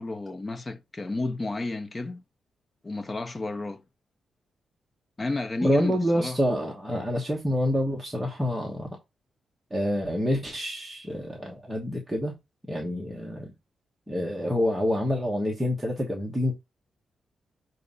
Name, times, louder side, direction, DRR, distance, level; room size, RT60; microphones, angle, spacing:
voice 1, 0.0-2.2 2.8-3.8 5.2-6.4, left 2 dB, 20° left, 0.7 m, -32 dB
voice 2, 5.6-9.0 9.7-12.3 12.7-13.5 14.1-16.5, equal, 10° right, 1.1 m, -27 dB
6.5 x 2.7 x 5.4 m
cardioid pair, 125°, 0 cm